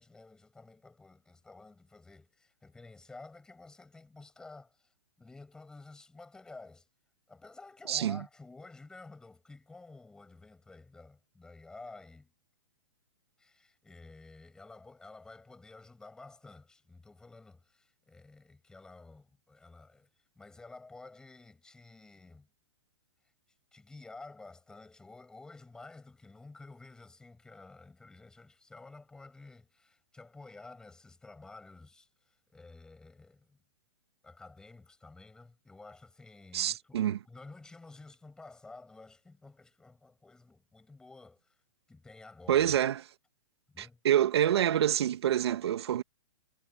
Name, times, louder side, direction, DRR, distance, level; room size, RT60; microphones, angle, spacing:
voice 1, 0.0-6.9 7.3-12.3 13.4-20.1 20.4-22.5 23.7-33.6 34.2-41.6 41.9-42.7 43.7-44.0, left 3 dB, 5° left, 7.3 m, -52 dB
voice 2, 7.9-8.2 36.5-37.2 42.5-43.0 43.8-46.0, right 11 dB, 60° right, 2.1 m, -27 dB
hypercardioid pair, 170°, 15 cm